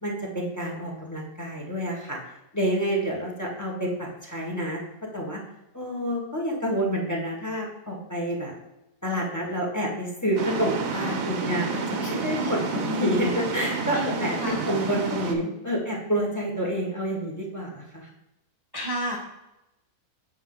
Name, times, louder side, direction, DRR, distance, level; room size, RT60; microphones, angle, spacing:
voice 1, 0.0-2.2 2.5-4.8 5.1-5.4 5.7-8.5 9.0-18.1, equal, 10° left, -1 dB, 1.4 m, -28 dB
sound 1, 10.4-15.3, right 4 dB, 70° right, 1.3 m, -30 dB
voice 2, 18.7-19.2, equal, 20° right, -3 dB, 1.0 m, -29 dB
8.2 x 5.3 x 3.9 m, 0.93 s
omnidirectional pair, 1.6 m